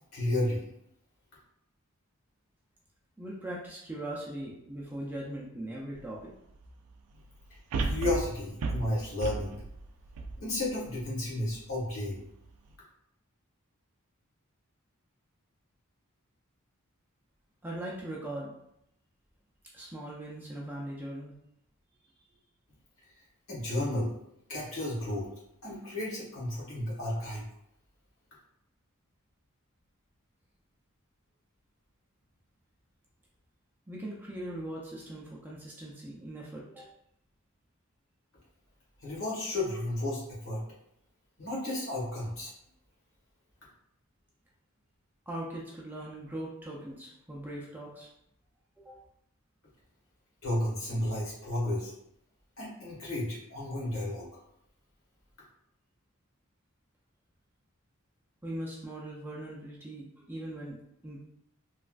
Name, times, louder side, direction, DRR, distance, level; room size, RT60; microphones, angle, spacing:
voice 1, 0.1-0.7 7.8-9.5 10.4-12.2 23.5-24.1 24.5-25.3 25.6-27.5 39.0-40.6 41.4-42.5 50.4-51.9 52.6-54.3, left 1 dB, 65° left, -6 dB, 1.3 m, -32 dB
voice 2, 3.2-6.3 17.6-18.5 19.7-21.3 33.9-36.9 45.3-48.1 48.8-49.0 58.4-60.8 61.0-61.2, right 1 dB, 10° right, -4 dB, 0.4 m, -40 dB
sound 1, 6.0-6.1 7.7-11.0 11.5-11.6, right 3 dB, 80° right, 0.3 m, -34 dB
3.1 x 2.3 x 2.4 m, 0.77 s
head